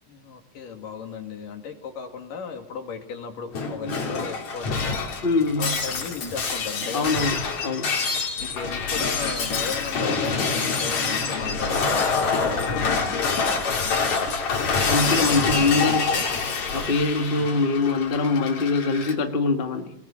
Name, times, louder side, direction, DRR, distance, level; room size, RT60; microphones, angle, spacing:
voice 1, 0.1-5.0 5.6-7.3 8.4-14.3 14.9-16.3 17.4-17.5, left 6 dB, 85° left, 4 dB, 4.1 m, -36 dB
Shatter, 3.5-19.1, left 4 dB, 60° left, 4.4 m, -26 dB
voice 2, 5.2-5.9 6.9-7.9 14.8-16.1 16.7-19.9, left 3 dB, 25° left, 5 dB, 1.1 m, -23 dB
28.5 x 20.5 x 7.4 m, 0.79 s
omnidirectional pair, 3.7 m